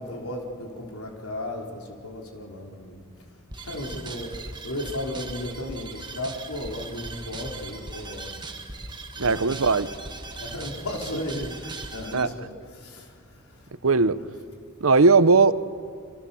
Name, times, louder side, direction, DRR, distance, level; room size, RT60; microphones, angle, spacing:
voice 1, 0.0-3.0 3.6-8.4 9.2-9.4 10.3-13.7, left 1 dB, 80° left, 4.2 m, -35 dB
sound 1, 3.5-12.2, right 3 dB, 20° right, 1.7 m, -39 dB
voice 2, 9.2-9.9 12.1-12.3 13.8-14.2 14.8-15.5, right 4 dB, 65° right, 0.8 m, -18 dB
27.0 x 26.5 x 7.1 m
head